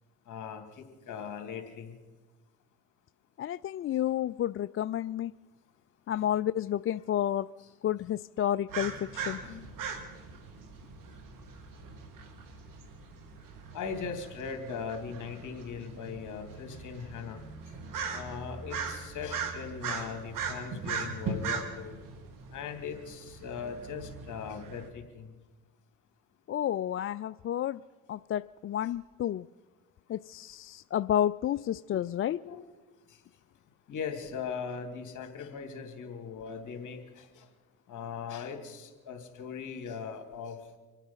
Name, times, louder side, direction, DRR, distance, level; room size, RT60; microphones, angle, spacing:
voice 1, 0.3-1.9 6.2-6.3 9.4-9.7 13.7-17.4 18.1-21.9 22.5-25.3 31.9-32.0 32.4-32.7 33.1-33.2 33.9-37.5 37.9-40.6, left 6 dB, 65° left, 4 dB, 3.0 m, -39 dB
voice 2, 3.4-5.3 6.1-7.5 7.8-9.4 26.5-27.8 28.1-29.5 30.1-32.4, left 11 dB, 40° left, 16 dB, 0.4 m, -30 dB
sound 1, 8.7-24.9, right 5 dB, 75° right, 2.0 m, -40 dB
26.0 x 9.1 x 5.7 m, 1.2 s
supercardioid pair, 60°, 33 cm